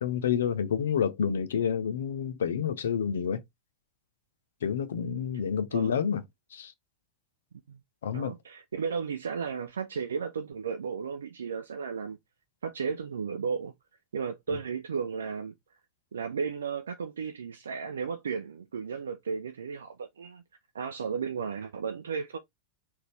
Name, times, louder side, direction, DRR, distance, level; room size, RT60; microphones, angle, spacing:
voice 1, 0.0-3.4 4.6-6.2 6.5-6.7 8.0-8.3, left 7 dB, 65° left, 0.7 m, -29 dB
voice 2, 8.1-12.2 12.6-13.7 14.1-15.5 16.1-20.4 20.7-22.4, right 6 dB, 70° right, 0.5 m, -34 dB
3.9 x 2.7 x 3.3 m
figure-of-eight pair, 90°, 0 cm